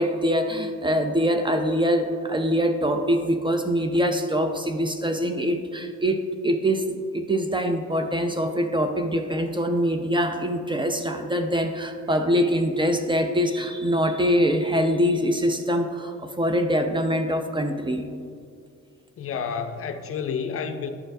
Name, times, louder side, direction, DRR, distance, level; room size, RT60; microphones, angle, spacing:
voice 1, 0.0-18.1, equal, 15° right, 0.4 m, -24 dB
voice 2, 19.2-20.9, left 6 dB, 50° left, 0.5 m, -30 dB
11.0 x 4.2 x 2.6 m
cardioid pair, 90°, 30 cm